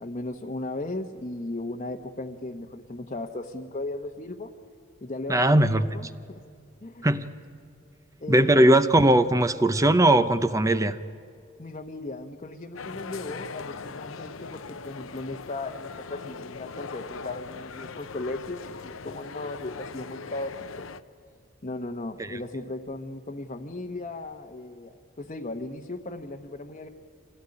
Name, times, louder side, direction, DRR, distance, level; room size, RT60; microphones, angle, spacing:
voice 1, 0.0-4.5 5.0-6.4 6.8-7.1 8.2-8.9 11.6-20.9 21.6-26.9, left 2 dB, 35° left, 1 dB, 1.0 m, -36 dB
voice 2, 5.3-5.9 7.0-7.2 8.3-11.0 22.2-22.4, right 1 dB, 15° right, 12 dB, 0.6 m, -19 dB
sound 1, 12.8-21.0, left 5 dB, 80° left, 0.8 m, -40 dB
25.5 x 17.0 x 9.8 m, 2.4 s
head